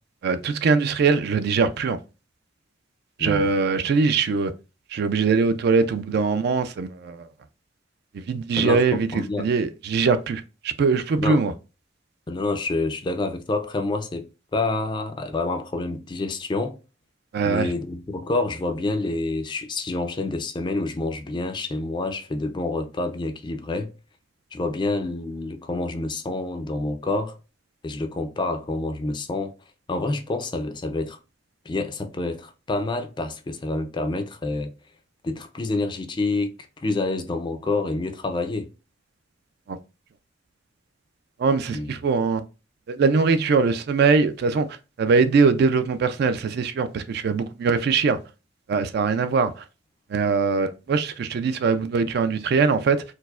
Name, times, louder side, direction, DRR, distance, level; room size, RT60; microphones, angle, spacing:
voice 1, 0.2-2.0 3.2-4.5 4.9-7.3 8.1-11.5 17.3-17.7 39.7-39.8 41.4-42.4 42.9-44.7 45.0-48.2 48.7-49.5 50.1-53.0, right 4 dB, 55° right, 0.3 m, -22 dB
voice 2, 3.2-3.5 8.6-9.5 11.2-11.4 12.3-16.8 17.4-23.9 24.5-27.4 27.8-29.5 29.9-31.2 31.7-34.7 35.2-38.7 41.7-41.9, left 2 dB, 25° left, 0.4 m, -28 dB
4.5 x 2.0 x 2.3 m
head